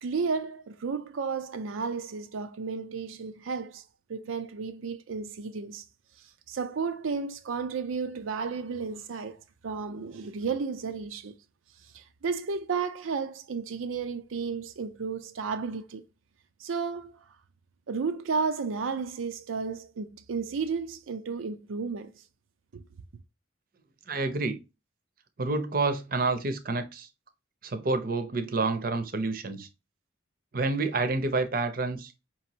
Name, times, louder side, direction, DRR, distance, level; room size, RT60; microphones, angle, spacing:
voice 1, 0.0-5.8 6.2-11.4 11.8-16.0 16.6-17.3 17.9-22.2 22.7-22.8, right 5 dB, 90° right, 0.5 m, -33 dB
voice 2, 24.1-24.6 25.4-27.1 27.6-29.7 30.5-32.1, right 3 dB, 45° right, 0.6 m, -28 dB
5.2 x 3.0 x 2.7 m
head